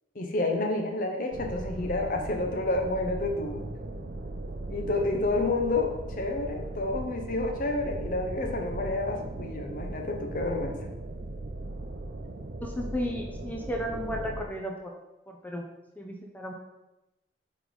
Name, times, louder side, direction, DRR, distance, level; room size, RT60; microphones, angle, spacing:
voice 1, 0.1-3.6 4.7-10.8, left 2 dB, 45° left, 3 dB, 0.7 m, -29 dB
sound 1, 1.3-14.4, right 2 dB, 55° right, 0.5 m, -38 dB
voice 2, 12.6-14.9 15.3-15.7 16.0-16.5, equal, 10° left, 1 dB, 0.6 m, -34 dB
5.3 x 3.9 x 4.7 m, 0.95 s
head